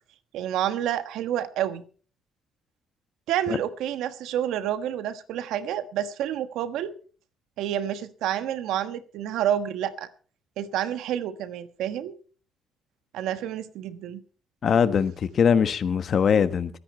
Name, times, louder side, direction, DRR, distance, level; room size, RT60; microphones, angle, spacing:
voice 1, 0.3-1.8 3.3-6.9 7.6-10.1 10.6-12.1 13.1-14.2, right 10 dB, 90° right, 1.3 m, -29 dB
voice 2, 14.6-16.8, left 7 dB, 55° left, 1.3 m, -22 dB
23.0 x 10.0 x 4.4 m
cardioid pair, 90°, 0 cm